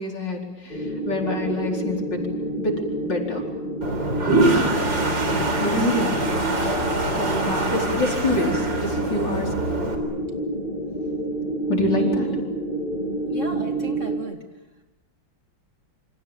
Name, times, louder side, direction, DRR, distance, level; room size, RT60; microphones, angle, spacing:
voice 1, 0.0-2.2 2.6-3.4 5.6-6.1 7.1-9.6 11.7-12.3, left 2 dB, 60° left, 0 dB, 5.2 m, -26 dB
sound 1, 0.7-14.2, right 1 dB, 25° left, 2.8 m, -29 dB
Toilet flush, 3.8-9.9, right 2 dB, 65° right, 4.6 m, -24 dB
voice 2, 12.0-12.4 13.3-14.4, equal, 40° right, 4 dB, 2.6 m, -35 dB
28.5 x 26.5 x 7.4 m, 1.0 s
omnidirectional pair, 2.1 m